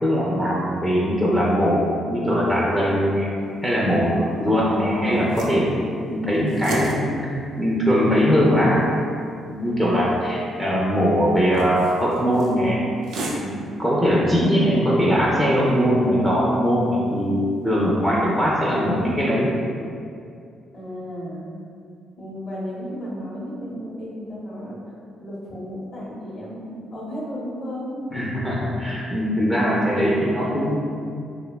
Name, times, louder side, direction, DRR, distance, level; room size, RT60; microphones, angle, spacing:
voice 1, 0.0-3.3 3.6-7.2 7.6-8.9 9.5-12.8 13.3-13.5 13.8-19.5 28.1-30.8, equal, 5° left, -6 dB, 0.4 m, -21 dB
sound 1, 3.4-19.2, right 2 dB, 80° right, 0.3 m, -38 dB
voice 2, 4.4-5.0 14.2-14.8 20.7-21.5 22.2-24.8 25.2-28.0 29.0-29.1 29.3-30.0 30.4-30.5, equal, 50° left, -8 dB, 0.8 m, -34 dB
2.7 x 2.2 x 2.2 m, 2.4 s
cardioid pair, 90°, 0 cm